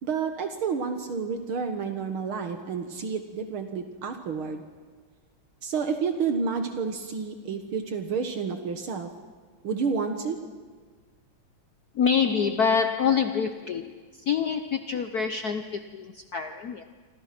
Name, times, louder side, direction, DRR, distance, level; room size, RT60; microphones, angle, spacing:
voice 1, 0.0-4.6 5.6-9.1 9.6-10.4, right 5 dB, 70° right, 6 dB, 2.4 m, -30 dB
voice 2, 11.9-13.9 14.3-16.8, left 6 dB, 55° left, 8 dB, 1.2 m, -26 dB
28.0 x 26.5 x 6.0 m, 1.5 s
omnidirectional pair, 2.4 m